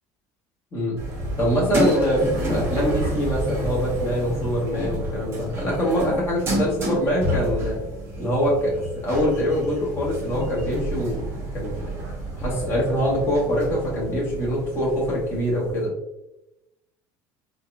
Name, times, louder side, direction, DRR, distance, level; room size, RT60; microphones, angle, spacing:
sound 1, 1.0-15.8, equal, 30° right, 0.9 m, -30 dB
voice 1, 1.4-7.8 8.2-11.2 11.5-11.7 12.4-15.9, equal, 30° left, -5 dB, 1.3 m, -24 dB
3.9 x 2.4 x 2.4 m, 0.89 s
cardioid pair, 160°, 9 cm